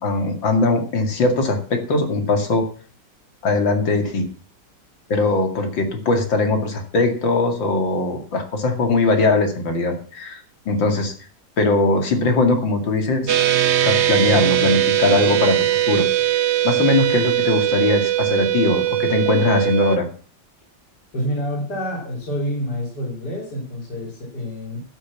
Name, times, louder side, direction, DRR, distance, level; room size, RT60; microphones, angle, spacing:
voice 1, 0.0-2.6 3.4-4.3 5.1-10.4 10.7-11.1 11.6-13.3 13.8-15.6 15.9-16.1 16.6-20.1, left 3 dB, 90° left, 5 dB, 3.0 m, -20 dB
sound 1, 13.3-20.0, right 12 dB, 55° right, 0.8 m, -20 dB
voice 2, 21.1-24.8, equal, 60° left, -2 dB, 3.9 m, -27 dB
11.5 x 8.8 x 7.2 m, 0.43 s
omnidirectional pair, 2.0 m